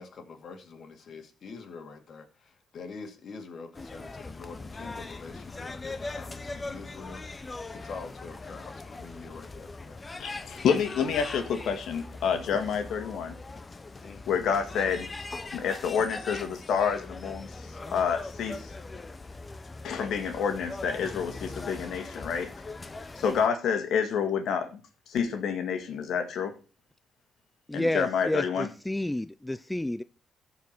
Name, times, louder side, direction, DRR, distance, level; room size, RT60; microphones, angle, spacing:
voice 1, 0.0-7.2 7.7-10.0 13.9-14.3, left 4 dB, 55° left, 2.5 m, -45 dB
sound 1, 3.7-23.5, left 3 dB, 25° left, 1.0 m, -41 dB
voice 2, 10.2-13.3 14.3-15.1 15.5-17.5 17.9-18.7 19.8-22.5 23.2-24.8 25.1-26.5 27.7-28.7, left 7 dB, 75° left, 2.0 m, -28 dB
voice 3, 27.7-30.0, left 1 dB, 10° left, 0.4 m, -30 dB
15.0 x 5.0 x 6.0 m
cardioid pair, 90°, 0 cm